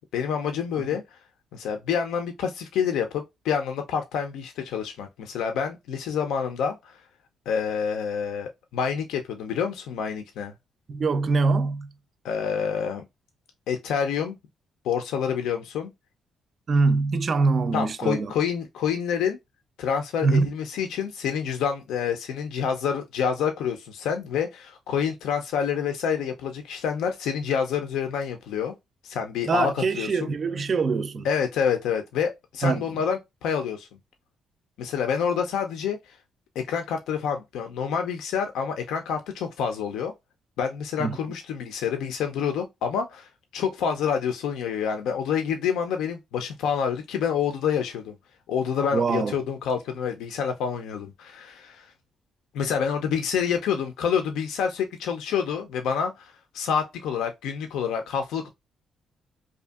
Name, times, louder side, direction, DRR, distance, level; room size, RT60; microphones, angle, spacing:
voice 1, 0.1-1.2 1.5-7.0 7.5-10.5 12.2-13.0 13.7-14.3 14.8-15.9 17.7-19.4 19.8-28.7 29.0-30.3 31.2-33.9 34.8-36.2 36.6-40.1 40.6-48.1 48.5-51.9 52.5-58.5, left 7 dB, 85° left, 0.4 m, -27 dB
voice 2, 10.9-11.9 16.7-18.3 20.2-20.5 29.5-31.3 32.6-32.8 41.0-41.2 48.9-49.4, right 4 dB, 45° right, 0.3 m, -23 dB
2.6 x 2.4 x 2.3 m
cardioid pair, 90°, 0 cm